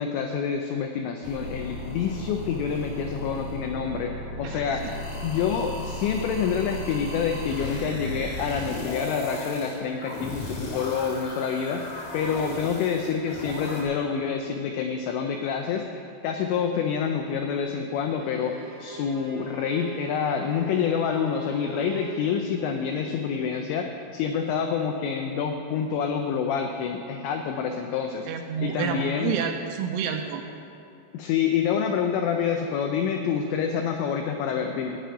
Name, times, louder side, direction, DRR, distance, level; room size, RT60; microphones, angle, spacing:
voice 1, 0.0-4.9 5.2-28.3 28.6-29.3 31.1-35.0, left 7 dB, 85° left, 4 dB, 2.5 m, -27 dB
sound 1, 1.2-13.8, left 1 dB, 45° left, 2.3 m, -35 dB
Bowed string instrument, 18.2-22.3, right 5 dB, 60° right, 3.4 m, -40 dB
voice 2, 28.3-30.4, right 7 dB, 85° right, 4 dB, 2.9 m, -29 dB
14.0 x 5.0 x 9.2 m, 2.7 s
omnidirectional pair, 5.9 m